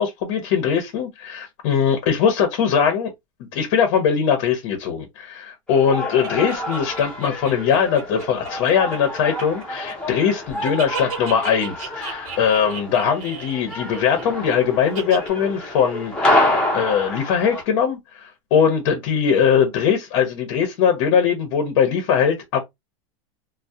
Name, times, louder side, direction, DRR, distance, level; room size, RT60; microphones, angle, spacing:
voice 1, 0.0-3.1 3.4-22.6, left 7 dB, 45° left, 0.6 m, -21 dB
sound 1, 5.7-17.6, left 1 dB, 5° left, 0.7 m, -27 dB
sound 2, 6.2-10.2 10.5-14.5 15.0-15.3, right 6 dB, 85° right, 0.8 m, -35 dB
2.3 x 2.0 x 2.6 m
supercardioid pair, 160°, 17 cm